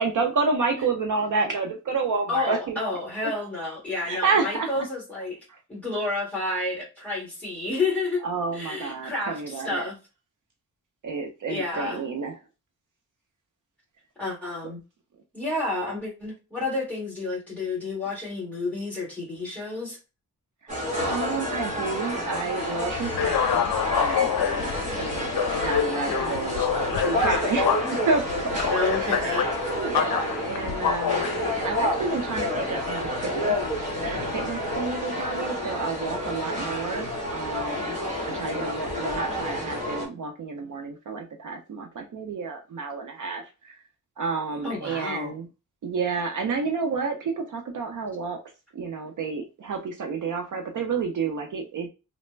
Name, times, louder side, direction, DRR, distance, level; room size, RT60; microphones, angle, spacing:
voice 1, 0.0-2.8 4.0-4.7 8.2-9.8 11.0-12.3 21.1-28.7 29.0-33.6 34.0-37.9 38.3-43.8 44.2-45.5 45.8-48.4 48.7-51.9, right 4 dB, 60° right, 3 dB, 0.5 m, -30 dB
voice 2, 2.3-5.4 5.7-8.2 8.5-10.0 11.5-12.0 14.2-14.8 15.3-20.0 28.7-29.5 44.6-45.3, left 2 dB, 5° left, -5 dB, 1.6 m, -30 dB
sound 1, 20.7-40.1, left 1 dB, 20° right, 1.1 m, -29 dB
sound 2, 22.9-34.8, left 8 dB, 80° left, 0.5 m, -28 dB
3.2 x 2.1 x 3.0 m, 0.30 s
wide cardioid pair, 165°, 35 cm